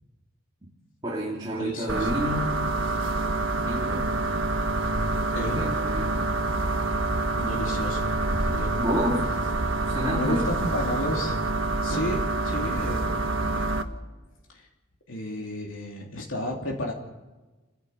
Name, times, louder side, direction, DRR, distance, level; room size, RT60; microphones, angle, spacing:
voice 1, 1.0-2.5 3.6-4.2 5.4-6.4 8.8-9.4 9.9-10.4, equal, 20° right, -3 dB, 2.4 m, -30 dB
voice 2, 1.6-2.1 5.3-5.8 7.3-8.1 8.4-8.7 10.0-11.4 11.8-13.8 14.5-14.7 15.1-16.9, left 1 dB, 80° left, -1 dB, 3.2 m, -32 dB
sound 1, 1.9-13.8, right 2 dB, 80° right, 1.5 m, -27 dB
30.0 x 11.0 x 8.2 m, 1.2 s
head